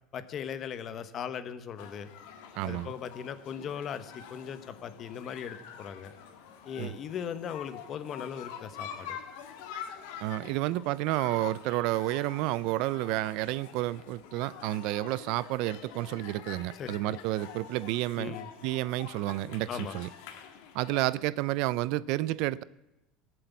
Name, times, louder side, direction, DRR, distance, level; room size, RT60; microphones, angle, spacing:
voice 1, 0.1-2.1 2.6-6.1 6.6-9.2 16.7-17.2 18.2-18.5 19.7-20.0, left 8 dB, 35° left, 1.2 m, -38 dB
sound 1, 1.8-21.1, left 8 dB, 85° left, 1.9 m, -46 dB
voice 2, 2.6-2.9 6.8-6.9 10.2-18.4 18.6-20.1 20.7-22.6, right 17 dB, 65° right, 0.5 m, -30 dB
19.0 x 7.8 x 8.3 m
cardioid pair, 145°, 0 cm